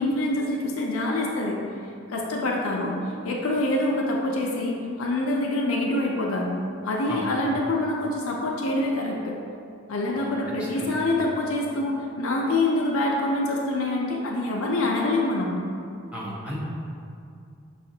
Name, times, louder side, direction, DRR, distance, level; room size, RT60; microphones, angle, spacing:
voice 1, 0.0-1.6 2.1-2.9 3.2-6.5 6.8-9.4 9.9-15.5, left 2 dB, 75° left, -1 dB, 0.4 m, -25 dB
voice 2, 10.2-11.0 16.1-16.6, equal, 5° right, -6 dB, 0.6 m, -35 dB
5.8 x 2.4 x 2.7 m, 2.4 s
head